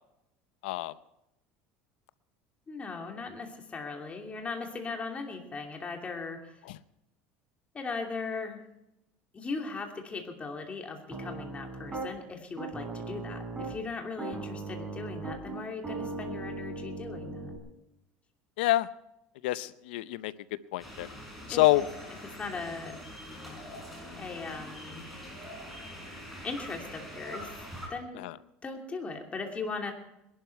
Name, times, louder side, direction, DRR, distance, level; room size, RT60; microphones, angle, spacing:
voice 1, 0.6-0.9 18.6-18.9 19.4-20.3 20.7-21.1 21.5-21.8 28.2-28.3, left 17 dB, 90° left, 16 dB, 0.6 m, -26 dB
voice 2, 2.7-6.5 7.7-8.6 9.3-17.6 21.5-21.9 22.4-23.0 23.4-25.0 26.4-27.5 27.9-28.2 28.6-29.9, left 4 dB, 25° left, 2 dB, 2.8 m, -38 dB
Piano, 11.1-12.1 12.6-13.8 14.2-17.6, right 3 dB, 15° right, 3.5 m, -38 dB
sound 1, 20.8-27.9, equal, ahead, 6.1 m, -44 dB
21.0 x 12.0 x 4.6 m, 0.87 s
supercardioid pair, 115°, 5 cm